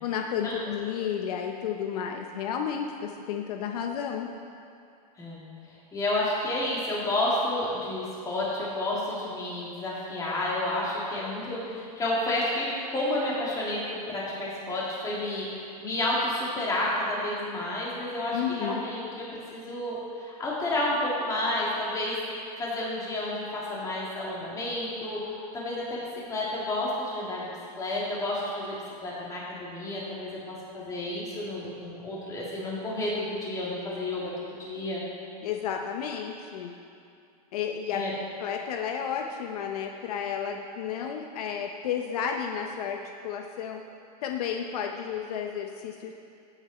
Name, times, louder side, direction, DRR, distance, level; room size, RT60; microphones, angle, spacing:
voice 1, 0.0-4.3 18.3-18.8 35.4-36.7 37.5-38.0 38.4-43.8 44.2-46.1, left 8 dB, 70° left, 3 dB, 1.0 m, -32 dB
voice 2, 5.9-26.0 26.3-27.5 27.8-28.8 29.0-35.0 37.9-38.1, left 1 dB, 15° left, -6 dB, 3.1 m, -30 dB
16.5 x 9.0 x 4.4 m, 2.4 s
supercardioid pair, 155°, 20 cm